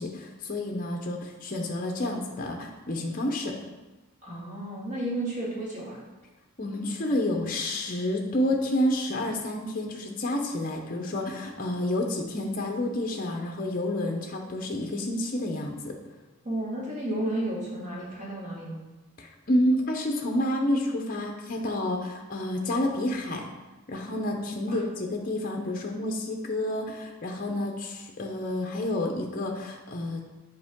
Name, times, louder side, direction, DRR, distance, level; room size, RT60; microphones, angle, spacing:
voice 1, 0.0-3.6 6.6-15.9 19.2-23.4 23.9-30.2, left 1 dB, 40° left, 2 dB, 0.6 m, -29 dB
voice 2, 4.2-6.0 16.4-18.8 24.6-24.8, right 1 dB, 35° right, -6 dB, 2.0 m, -32 dB
7.8 x 4.6 x 3.6 m, 1.2 s
head